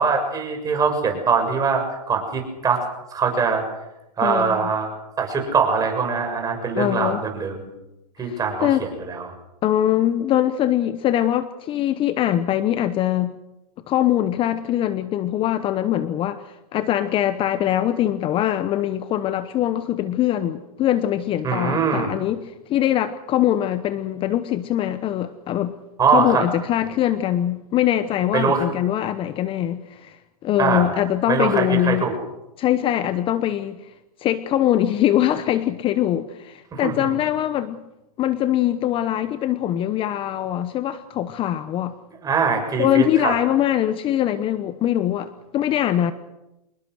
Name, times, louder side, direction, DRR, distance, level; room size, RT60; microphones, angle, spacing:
voice 1, 0.0-2.8 3.1-3.6 4.2-4.9 5.2-7.7 8.2-9.3 21.4-22.1 26.0-26.4 28.3-28.7 30.6-30.9 31.3-32.1 36.7-36.9 42.2-43.3, right 5 dB, 20° right, 3 dB, 6.7 m, -22 dB
voice 2, 4.2-4.6 6.7-7.2 8.2-8.8 9.6-13.4 13.9-25.7 26.1-32.1 32.6-33.9 34.2-37.8 38.2-42.0 42.8-46.1, left 12 dB, 25° left, 12 dB, 1.0 m, -22 dB
26.5 x 20.5 x 6.4 m, 0.94 s
hypercardioid pair, 130°, 20 cm